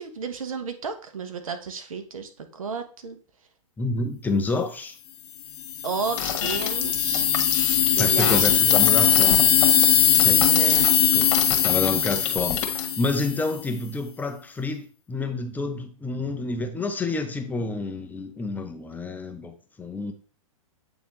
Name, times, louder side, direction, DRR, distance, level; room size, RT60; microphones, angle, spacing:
voice 1, 0.0-3.2 5.8-7.3 7.9-8.8 10.3-10.9, right 5 dB, 75° right, 1.1 m, -32 dB
voice 2, 3.8-5.0 8.0-9.6 10.2-11.3 11.6-20.1, left 3 dB, 10° left, 0.7 m, -29 dB
sound 1, 5.6-13.5, left 10 dB, 30° left, 1.2 m, -20 dB
sound 2, 6.2-12.9, left 8 dB, 60° left, 1.4 m, -29 dB
8.3 x 3.6 x 3.1 m
hypercardioid pair, 115°, 17 cm